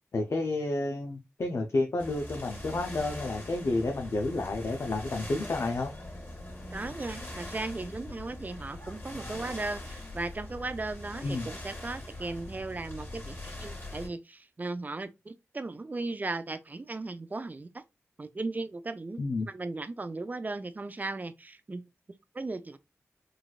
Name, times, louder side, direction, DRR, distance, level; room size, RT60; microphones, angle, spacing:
voice 1, 0.1-5.9 11.2-11.5 19.2-19.5, left 2 dB, 65° left, 0.5 m, -30 dB
sound 1, 2.0-14.1, left 1 dB, 40° left, 1.7 m, -42 dB
voice 2, 6.7-17.8 18.2-21.8 22.3-22.8, right 3 dB, 35° right, 0.4 m, -37 dB
3.8 x 2.3 x 2.3 m
cardioid pair, 55°, 5 cm